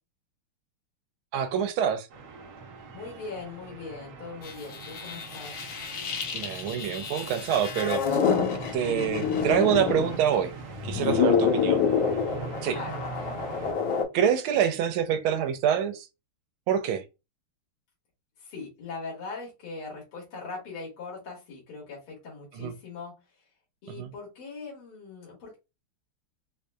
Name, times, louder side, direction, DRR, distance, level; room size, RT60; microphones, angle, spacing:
voice 1, 1.3-2.1 6.3-8.2 8.7-10.5 10.8-11.8 12.6-12.8 14.1-16.1 16.7-17.0 22.6-22.7 23.9-24.1, right 8 dB, 85° right, 1.5 m, -26 dB
sound 1, 2.1-13.7, right 5 dB, 65° right, 1.0 m, -42 dB
voice 2, 2.9-5.6 11.1-11.6 12.6-13.3 18.4-23.4 23.8-25.6, left 4 dB, 85° left, 2.4 m, -41 dB
sound 2, 4.4-10.4 10.7-14.0, left 6 dB, 65° left, 1.5 m, -28 dB
4.7 x 2.6 x 2.2 m
omnidirectional pair, 2.3 m